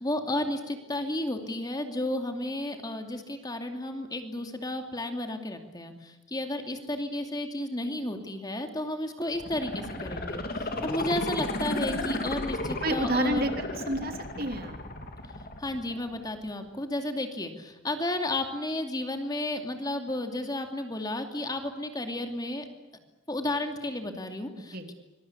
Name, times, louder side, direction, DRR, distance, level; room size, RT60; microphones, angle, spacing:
voice 1, 0.0-13.5 15.6-22.6 23.3-24.9, left 1 dB, 20° left, 5 dB, 2.6 m, -32 dB
sound 1, 9.3-16.3 16.7-16.8, left 1 dB, 50° left, 3.1 m, -34 dB
voice 2, 12.8-14.8 24.5-24.9, right 1 dB, 50° right, 6 dB, 3.0 m, -30 dB
26.0 x 22.0 x 8.5 m, 1.1 s
head